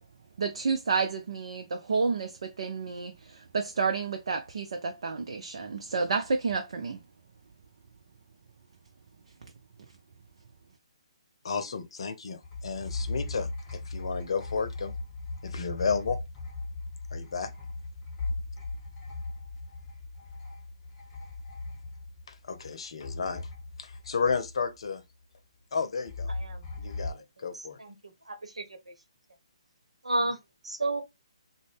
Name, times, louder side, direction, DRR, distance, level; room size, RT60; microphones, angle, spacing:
voice 1, 0.4-7.0, right 4 dB, 60° right, 0.5 m, -30 dB
voice 2, 11.4-14.9 15.4-16.2 17.1-17.5 22.3-23.4 23.8-25.0 25.7-26.3 26.8-27.8, left 5 dB, 60° left, 0.7 m, -32 dB
sound 1, 12.4-22.7 23.0-24.9 26.1-27.1, left 3 dB, 20° left, 1.0 m, -38 dB
voice 3, 26.3-26.6 27.8-27.9 28.3-28.6 30.0-30.4 30.6-31.0, right 2 dB, 85° right, 0.9 m, -30 dB
3.8 x 2.1 x 3.4 m
figure-of-eight pair, 140°, 3 cm